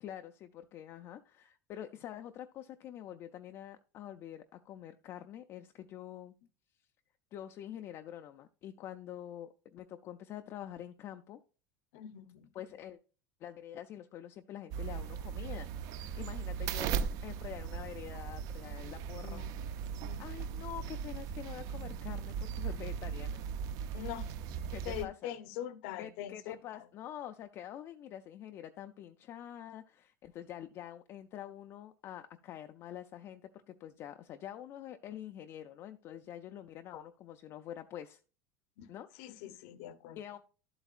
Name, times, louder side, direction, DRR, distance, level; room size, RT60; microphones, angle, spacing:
voice 1, 0.0-6.3 7.3-11.4 12.5-13.0 13.4-19.4 20.2-23.4 24.7-25.3 26.0-38.2 38.9-39.1 40.2-40.4, left 11 dB, 25° left, 0.3 m, -46 dB
voice 2, 11.9-12.5 19.2-19.7 20.0-20.2 23.9-24.3 24.8-26.8 38.8-38.9 39.2-40.2, left 11 dB, 55° left, 0.7 m, -43 dB
sound 1, 14.7-25.1, right 7 dB, 40° right, 0.4 m, -38 dB
12.0 x 7.9 x 2.4 m
cardioid pair, 180°, 9 cm